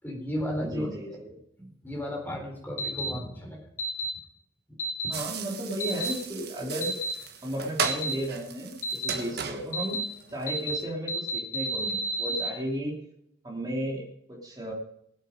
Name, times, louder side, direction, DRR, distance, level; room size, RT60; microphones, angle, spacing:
voice 1, 0.0-1.2 1.6-3.7 5.0-5.1, equal, 10° left, 0 dB, 4.2 m, -34 dB
voice 2, 0.6-1.3 5.1-6.9 7.4-10.0 10.3-13.0 13.4-14.7, right 1 dB, 20° right, -3 dB, 3.1 m, -34 dB
sound 1, 2.8-3.1 3.8-4.1 4.8-5.1 5.8-6.1 6.8-7.1 7.8-8.1 8.8-9.1 9.7-10.0 10.5-10.8 11.1-12.5, right 2 dB, 45° left, 3.3 m, -30 dB
sound 2, 5.1-10.8, right 5 dB, 55° right, 1.5 m, -36 dB
19.5 x 8.3 x 5.1 m, 0.75 s
head